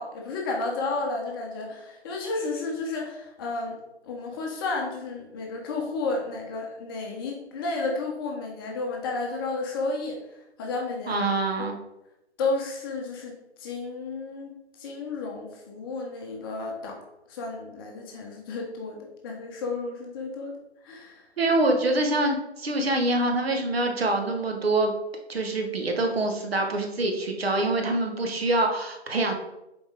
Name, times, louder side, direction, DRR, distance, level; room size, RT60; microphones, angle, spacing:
voice 1, 0.0-3.8 4.0-10.2 10.6-11.3 11.6-11.7 12.4-14.5 14.8-17.0 17.3-20.5 20.8-21.2, left 3 dB, 20° left, 0 dB, 0.8 m, -32 dB
voice 2, 11.1-11.8 21.4-24.9 25.3-29.3, right 2 dB, 60° right, 4 dB, 1.3 m, -25 dB
7.0 x 4.3 x 3.5 m, 0.91 s
figure-of-eight pair, 130°, 34 cm